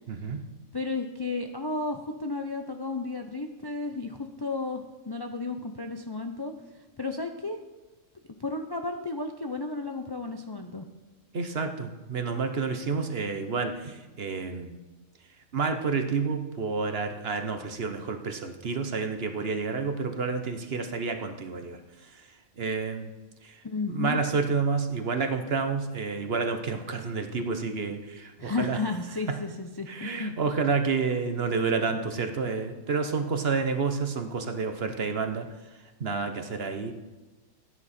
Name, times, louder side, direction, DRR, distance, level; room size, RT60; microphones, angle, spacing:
voice 1, 0.1-0.4 11.3-14.8 15.5-21.8 22.6-23.1 23.4-23.6 23.9-28.8 29.3-29.4 29.9-35.5 36.0-36.9, right 4 dB, 50° right, 7 dB, 1.1 m, -29 dB
voice 2, 0.7-6.5 7.0-7.6 8.4-10.8 23.6-24.2 28.4-30.3, left 3 dB, 30° left, 4 dB, 0.5 m, -33 dB
15.5 x 9.7 x 4.3 m, 1.1 s
omnidirectional pair, 1.4 m